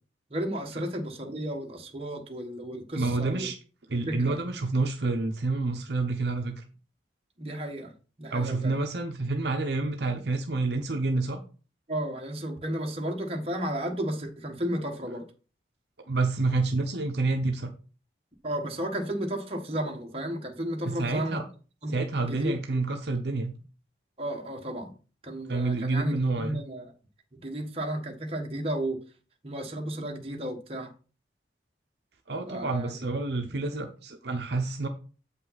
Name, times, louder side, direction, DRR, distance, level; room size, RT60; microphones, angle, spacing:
voice 1, 0.3-3.5 4.1-4.4 7.4-7.9 8.2-8.8 11.9-15.3 18.4-21.4 21.8-22.8 24.2-24.9 25.2-26.9 27.4-29.0 29.4-30.9 32.5-32.9, right 1 dB, 30° right, 1.4 m, -33 dB
voice 2, 2.9-3.6 3.9-6.6 8.3-11.4 16.1-17.7 20.8-21.4 21.9-23.5 25.5-26.6 32.3-34.9, right 3 dB, 60° right, 0.8 m, -28 dB
7.9 x 5.5 x 4.1 m
head